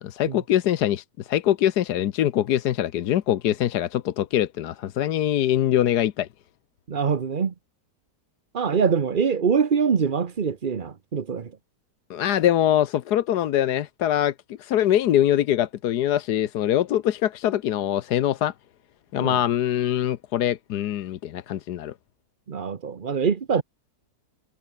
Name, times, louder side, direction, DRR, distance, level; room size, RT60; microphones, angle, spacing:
voice 1, 0.0-6.3 12.1-14.3 14.6-18.5 19.1-21.9, left 11 dB, 70° left, 1.4 m, -23 dB
voice 2, 6.9-7.5 8.5-11.5 19.2-19.4 22.5-23.6, right 6 dB, 35° right, 1.0 m, -24 dB
omnidirectional pair, 1.8 m